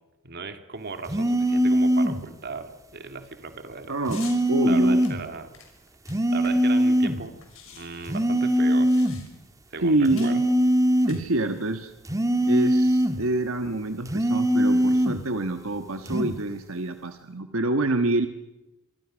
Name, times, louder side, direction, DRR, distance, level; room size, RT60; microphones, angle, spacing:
voice 1, 0.2-4.0 4.6-5.5 6.1-9.0 9.7-10.4, right 4 dB, 50° right, 8 dB, 2.4 m, -37 dB
sound 1, 1.1-2.2 4.1-5.2 6.1-7.2 8.1-9.2 10.1-11.2 12.1-13.2 14.1-15.2 16.1-16.4, equal, 15° right, 1.6 m, -22 dB
voice 2, 3.9-4.2 4.5-5.0 9.8-10.5 11.1-11.9 12.5-18.3, right 2 dB, 75° right, 8 dB, 1.5 m, -26 dB
sound 2, 4.1-4.4 5.0-6.8 7.1-7.2 7.4-9.5 10.2-10.4 10.9-11.7, left 8 dB, 70° left, 5.8 m, -47 dB
26.5 x 24.5 x 6.4 m, 1.0 s
head